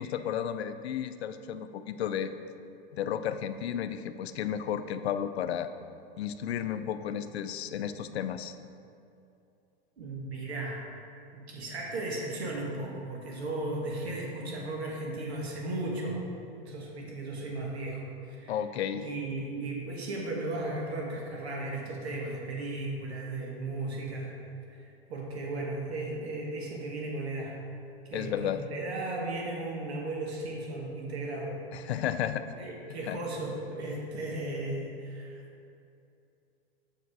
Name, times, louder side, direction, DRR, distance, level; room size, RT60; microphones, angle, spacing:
voice 1, 0.0-2.3 2.9-5.7 6.2-8.5 18.5-19.1 28.1-28.6 31.7-32.4 33.1-33.2, left 9 dB, 85° left, 11 dB, 0.5 m, -33 dB
voice 2, 10.0-10.8 11.3-16.2 16.6-18.6 19.0-24.3 24.7-27.6 28.0-31.9 32.5-35.4, right 2 dB, 85° right, -1 dB, 1.3 m, -36 dB
7.0 x 4.6 x 4.7 m, 2.6 s
hypercardioid pair, 105°, 31 cm